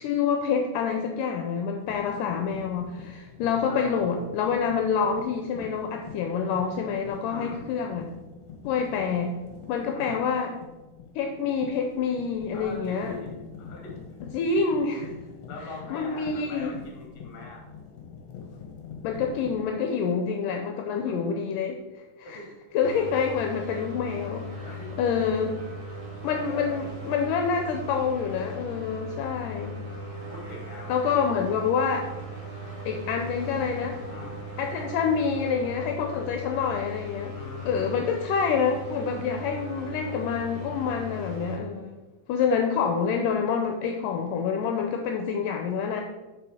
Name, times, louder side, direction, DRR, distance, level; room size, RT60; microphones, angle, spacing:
voice 1, 0.0-8.1 8.7-9.4 9.7-10.5 11.2-13.2 14.3-15.1 15.9-16.7 19.0-21.8 22.3-22.4 22.7-24.6 25.0-25.6 26.2-29.8 30.9-32.1 32.9-34.0 34.6-37.3 37.7-42.0 42.3-46.0, left 6 dB, 80° left, 4 dB, 2.1 m, -27 dB
sound 1, 1.8-19.7, left 6 dB, 60° left, 2.0 m, -44 dB
voice 2, 3.6-4.1 7.3-7.7 9.9-10.3 12.5-14.2 15.5-17.7 20.9-21.1 22.2-22.5 24.6-25.0 26.4-26.9 30.3-31.5 34.1-34.4 37.3-38.0, left 1 dB, 35° left, -1 dB, 2.1 m, -42 dB
sound 2, 22.8-41.6, equal, 40° right, 2.3 m, -38 dB
6.8 x 5.5 x 4.8 m, 1.1 s
omnidirectional pair, 4.1 m